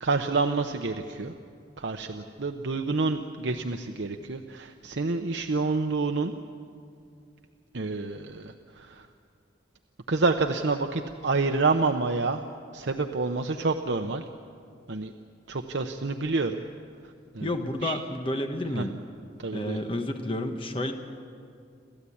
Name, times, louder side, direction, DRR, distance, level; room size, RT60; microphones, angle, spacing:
voice 1, 0.0-1.3 1.8-6.3 7.7-9.1 10.1-12.4 12.7-14.2 14.9-15.1 15.5-16.6 17.3-17.5 17.8-18.0 18.7-18.9 19.4-19.8, right 3 dB, 70° right, 5 dB, 0.8 m, -28 dB
voice 2, 17.4-19.0 19.5-20.9, left 1 dB, 30° left, 5 dB, 1.2 m, -30 dB
29.0 x 13.5 x 8.5 m, 2.3 s
head